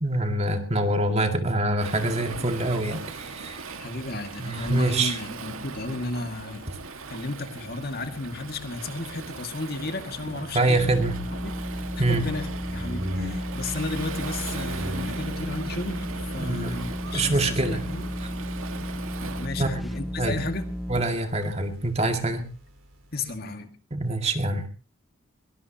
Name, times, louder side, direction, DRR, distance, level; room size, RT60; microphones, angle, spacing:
voice 1, 0.0-3.7 4.4-5.2 10.5-11.2 12.0-12.2 16.4-16.8 17.1-17.8 19.6-19.8 20.2-20.4 20.9-22.5 23.9-24.7, right 2 dB, 30° right, 5 dB, 2.2 m, -25 dB
Waves surf, 1.8-19.5, right 4 dB, 85° right, 2.0 m, -39 dB
voice 2, 3.8-6.7 7.1-11.0 11.4-12.5 12.7-16.1 16.3-18.2 19.4-20.7 23.1-23.7, left 2 dB, 50° left, 6 dB, 2.1 m, -33 dB
sound 1, 10.8-21.0, equal, ahead, 0.7 m, -33 dB
sound 2, 11.2-23.4, left 1 dB, 65° right, 4.9 m, -42 dB
22.0 x 20.5 x 2.9 m, 0.35 s
head